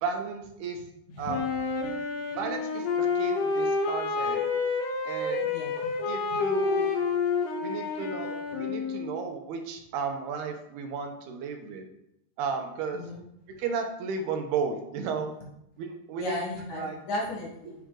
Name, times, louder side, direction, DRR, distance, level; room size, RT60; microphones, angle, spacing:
voice 1, 0.0-0.8 1.2-1.5 2.4-4.4 5.0-5.5 6.1-6.9 7.6-11.9 12.4-13.0 13.6-15.3 15.8-16.4 16.8-17.0, right 5 dB, 75° right, 5 dB, 2.8 m, -33 dB
Wind instrument woodwind instrument, 1.3-9.3, left 4 dB, 75° left, 3.1 m, -29 dB
voice 2, 16.2-17.7, left 1 dB, 60° left, -2 dB, 2.4 m, -34 dB
10.0 x 6.5 x 3.8 m, 0.79 s
omnidirectional pair, 4.8 m